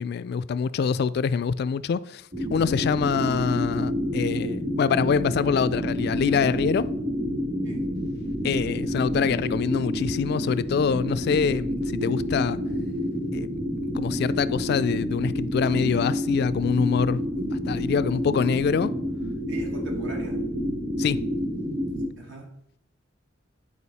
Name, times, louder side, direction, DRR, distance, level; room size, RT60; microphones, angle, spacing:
voice 1, 0.0-6.9 8.4-12.6 13.3-13.5 13.9-18.9 21.0-21.2, left 6 dB, 55° left, 0.3 m, -25 dB
sound 1, 2.3-22.1, equal, 50° right, 2.7 m, -29 dB
voice 2, 19.5-20.4 22.1-22.5, equal, 80° right, 1.8 m, -38 dB
9.9 x 4.8 x 4.1 m
head